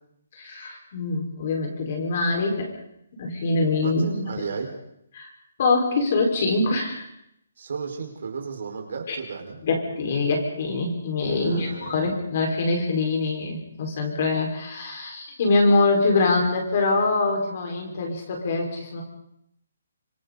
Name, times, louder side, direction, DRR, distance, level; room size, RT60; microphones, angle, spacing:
voice 1, 0.3-2.7 3.2-4.0 4.3-4.4 5.1-5.3 5.6-7.0 9.1-9.2 9.6-19.0, left 3 dB, 35° left, 1 dB, 5.0 m, -24 dB
voice 2, 3.8-4.7 7.6-9.6 11.3-12.1, right 5 dB, 55° right, 2 dB, 5.1 m, -33 dB
26.0 x 26.0 x 4.2 m, 0.75 s
hypercardioid pair, 175°, 0 cm